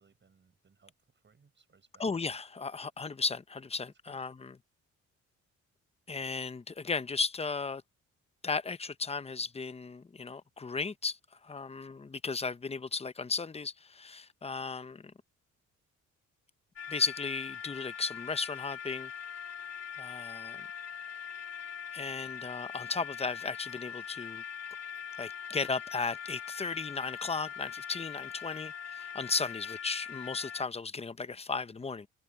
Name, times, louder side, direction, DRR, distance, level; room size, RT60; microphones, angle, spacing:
voice 1, 0.0-2.1 4.0-4.2, right 5 dB, 40° right, 7.5 m, -65 dB
voice 2, 2.0-4.5 6.1-7.8 8.4-15.1 16.9-19.1 20.0-20.7 21.9-24.4 25.2-32.1, left 4 dB, 20° left, 0.9 m, -35 dB
sound 1, 16.8-30.6, left 8 dB, 55° left, 3.4 m, -42 dB
cardioid pair, 90°, 30 cm